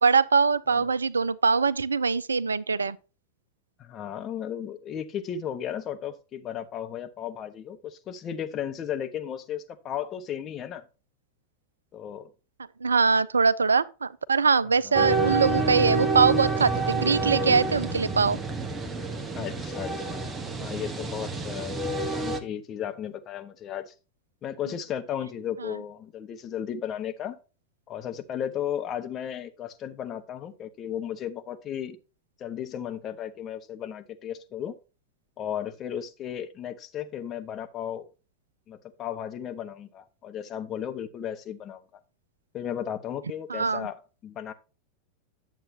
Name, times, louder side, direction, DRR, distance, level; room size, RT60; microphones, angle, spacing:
voice 1, 0.0-3.0 12.8-18.4 25.6-25.7 43.5-43.9, right 5 dB, 75° right, 0.4 m, -23 dB
voice 2, 3.8-10.9 11.9-12.3 14.8-15.0 19.4-21.8 22.1-23.9 24.4-27.4 27.9-32.0 32.4-34.7 35.4-38.1 38.7-41.8 42.5-44.5, left 9 dB, 30° left, 1.1 m, -35 dB
sound 1, 14.9-22.4, right 3 dB, 15° right, 1.2 m, -28 dB
9.9 x 7.4 x 2.8 m
figure-of-eight pair, 90°, 0 cm